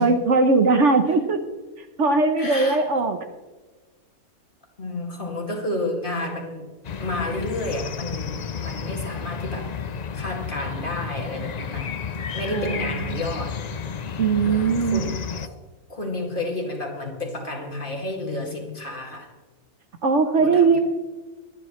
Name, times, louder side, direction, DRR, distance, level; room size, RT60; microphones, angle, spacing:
voice 1, 0.0-1.4 2.0-3.2 12.5-13.2 14.2-15.0 20.0-20.8, right 4 dB, 60° right, 7 dB, 1.2 m, -20 dB
voice 2, 2.4-2.9 4.8-6.7 7.0-9.7 10.1-12.0 12.3-13.6 14.4-15.6 15.9-19.3 20.4-20.8, left 2 dB, 35° left, 0 dB, 2.4 m, -31 dB
sound 1, 6.8-15.5, left 6 dB, 55° left, 0.4 m, -32 dB
23.5 x 9.5 x 3.2 m, 1.3 s
omnidirectional pair, 1.5 m